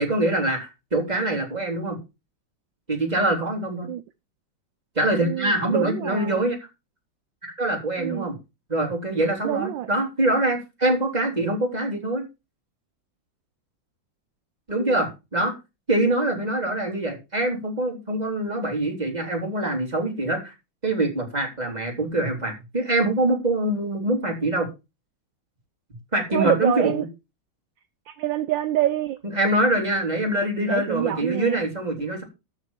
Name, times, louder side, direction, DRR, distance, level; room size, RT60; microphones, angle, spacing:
voice 1, 0.0-2.0 2.9-3.9 5.0-6.6 7.4-8.3 8.7-12.2 14.7-15.5 15.9-20.5 20.8-24.7 26.1-27.0 29.3-32.2, right 1 dB, 20° right, 3.8 m, -24 dB
voice 2, 5.2-6.4 8.0-8.3 9.4-9.9 14.7-15.0 26.3-27.0 28.1-29.2 30.7-31.6, right 13 dB, 70° right, 1.4 m, -26 dB
13.0 x 4.8 x 7.3 m
omnidirectional pair, 2.2 m